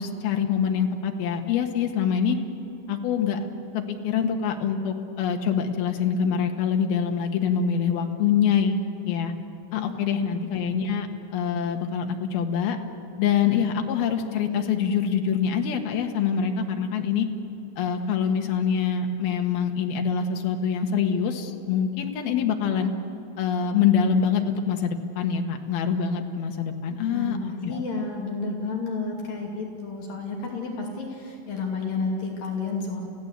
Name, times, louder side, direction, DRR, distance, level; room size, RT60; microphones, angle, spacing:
voice 1, 0.0-2.4 2.9-3.4 3.7-9.3 9.7-12.8 13.2-17.3 17.8-22.9 23.4-27.8, left 7 dB, 80° left, 3 dB, 3.4 m, -25 dB
voice 2, 27.1-33.0, left 4 dB, 65° left, -1 dB, 4.2 m, -31 dB
29.5 x 16.0 x 8.2 m, 2.9 s
omnidirectional pair, 4.3 m